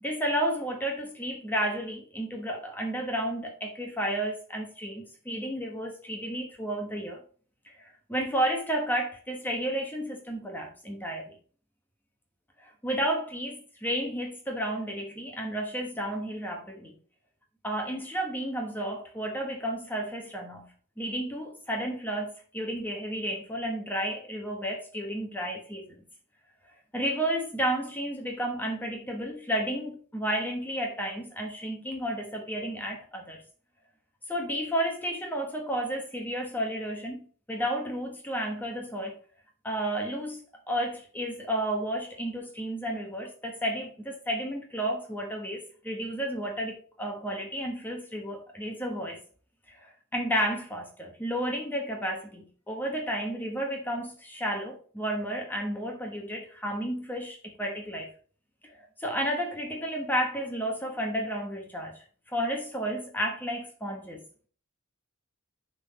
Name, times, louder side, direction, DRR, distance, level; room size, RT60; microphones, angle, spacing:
voice 1, 0.0-7.2 7.8-11.4 12.6-16.9 17.6-20.7 21.0-25.9 26.9-33.4 34.3-39.2 39.6-40.4 40.7-49.2 49.7-58.1 58.6-62.0 62.3-64.2, right 1 dB, 10° left, 1.2 m, -32 dB
10.0 x 4.0 x 4.1 m
head